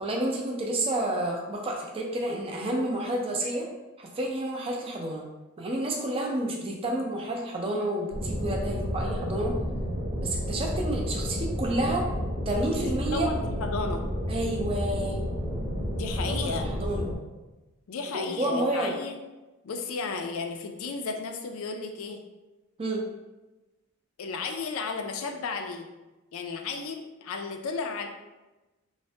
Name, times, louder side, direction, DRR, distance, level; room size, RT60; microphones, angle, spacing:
voice 1, 0.0-3.7 4.0-5.2 5.6-9.5 10.2-12.1 12.5-13.3 14.3-15.2 16.3-17.1 18.1-18.9 22.8-23.0, right 1 dB, 25° right, 0 dB, 0.4 m, -30 dB
sound 1, 8.1-17.1, equal, 45° right, 0.8 m, -31 dB
voice 2, 12.8-14.0 15.9-16.7 17.9-19.2 19.6-22.2 24.2-25.9 26.3-28.1, left 4 dB, 65° left, 4 dB, 0.4 m, -34 dB
3.1 x 2.1 x 2.7 m, 1.1 s
head